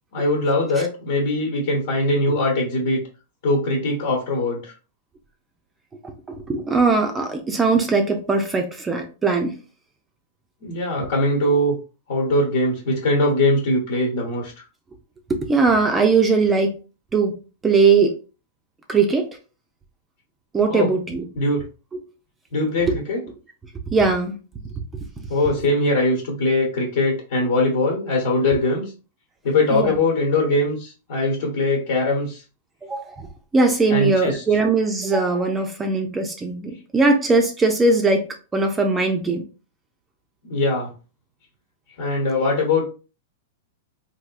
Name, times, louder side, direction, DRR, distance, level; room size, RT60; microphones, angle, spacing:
voice 1, 0.1-3.0 3.4-4.7 10.6-11.7 12.1-14.6 20.7-20.9 21.3-21.6 22.5-23.2 25.3-28.9 29.4-32.4 33.9-34.4 40.4-40.9 42.0-42.8, left 2 dB, 65° left, 0 dB, 1.1 m, -21 dB
voice 2, 6.0-9.6 15.3-16.8 17.1-17.3 17.6-18.2 18.9-19.3 20.5-21.3 21.9-22.0 22.9-23.0 23.9-24.4 29.7-30.0 32.8-33.3 33.5-38.2 38.5-39.4, right 4 dB, 15° right, 4 dB, 0.4 m, -20 dB
3.4 x 2.8 x 2.4 m, 0.34 s
hypercardioid pair, 140°, 0 cm